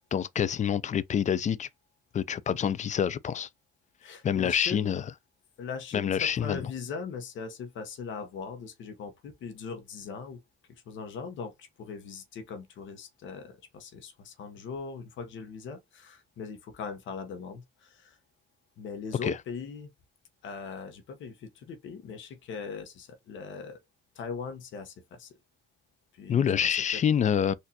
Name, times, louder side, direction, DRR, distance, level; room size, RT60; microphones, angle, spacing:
voice 1, 0.1-1.7 2.1-3.5 4.2-5.0 5.9-6.6 19.3-19.4 26.3-27.5, left 8 dB, 40° left, 0.4 m, -27 dB
voice 2, 4.0-5.0 5.6-10.4 10.9-18.2 18.8-19.9 20.4-23.8 24.2-25.3 26.1-27.0, left 5 dB, 75° left, 0.9 m, -40 dB
4.2 x 2.5 x 2.8 m
cardioid pair, 90°, 20 cm